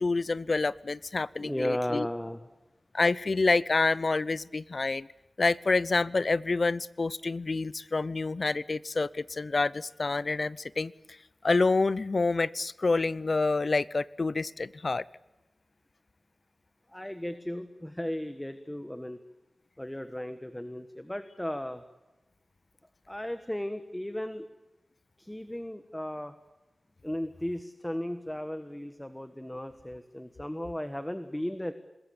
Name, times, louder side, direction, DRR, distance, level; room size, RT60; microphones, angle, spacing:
voice 1, 0.0-2.1 2.9-5.1 5.4-10.9 11.4-15.0, left 3 dB, 50° left, 19 dB, 0.7 m, -27 dB
voice 2, 1.4-2.4 16.9-19.2 19.8-21.8 23.1-24.5 25.2-26.3 27.0-31.7, left 1 dB, 10° left, 9 dB, 1.4 m, -35 dB
26.5 x 21.0 x 7.1 m, 1.0 s
wide cardioid pair, 100°, 0 cm